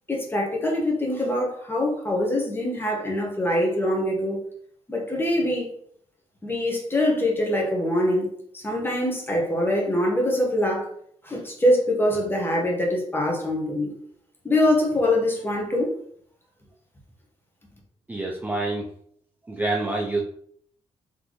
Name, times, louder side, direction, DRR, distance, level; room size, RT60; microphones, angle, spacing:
voice 1, 0.1-4.4 4.9-5.7 6.4-8.3 8.5-10.9 11.2-13.9 14.4-15.9, left 1 dB, 20° left, -1 dB, 1.4 m, -24 dB
voice 2, 18.1-18.9 19.5-20.2, right 2 dB, 15° right, -2 dB, 0.6 m, -27 dB
4.1 x 3.4 x 3.1 m, 0.64 s
cardioid pair, 105°, 12 cm